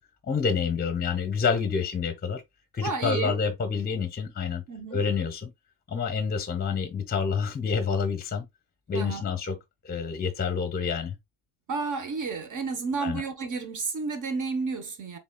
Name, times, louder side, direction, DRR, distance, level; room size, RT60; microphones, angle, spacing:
voice 1, 0.2-2.4 2.7-4.6 4.9-5.5 5.9-8.5 8.9-9.6 9.8-11.1 13.0-13.2, left 5 dB, 20° left, 0.9 m, -28 dB
voice 2, 2.8-3.4 4.7-5.0 8.9-9.2 11.7-15.2, right 4 dB, 40° right, 1.1 m, -31 dB
4.0 x 3.7 x 2.3 m
supercardioid pair, 95°, 46 cm